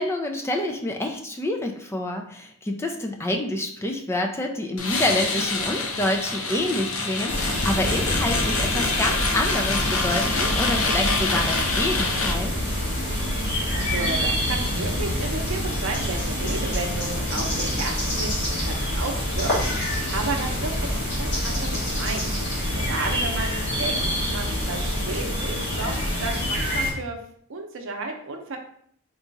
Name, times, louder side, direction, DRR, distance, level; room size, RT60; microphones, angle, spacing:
voice 1, 0.0-12.6, left 1 dB, 10° left, 3 dB, 0.3 m, -27 dB
sound 1, 4.8-12.3, left 3 dB, 75° left, 0.7 m, -26 dB
sound 2, 7.3-26.9, equal, 55° left, 1.5 m, -26 dB
voice 2, 13.4-18.3 18.6-25.9 26.2-27.2 27.5-28.6, right 3 dB, 65° right, 3 dB, 0.7 m, -33 dB
3.7 x 2.4 x 3.9 m, 0.63 s
head